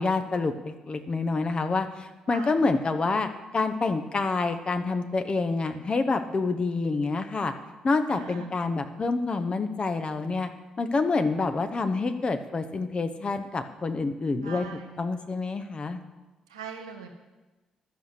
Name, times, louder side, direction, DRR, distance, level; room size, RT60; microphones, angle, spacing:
voice 1, 0.0-7.5 7.8-10.5 10.8-14.6 15.0-16.0, left 3 dB, 30° left, 8 dB, 1.0 m, -27 dB
voice 2, 8.1-8.5 14.4-14.9 16.5-17.1, right 6 dB, 80° right, 3 dB, 1.1 m, -40 dB
11.5 x 6.6 x 8.2 m, 1.2 s
figure-of-eight pair, 40°, 3 cm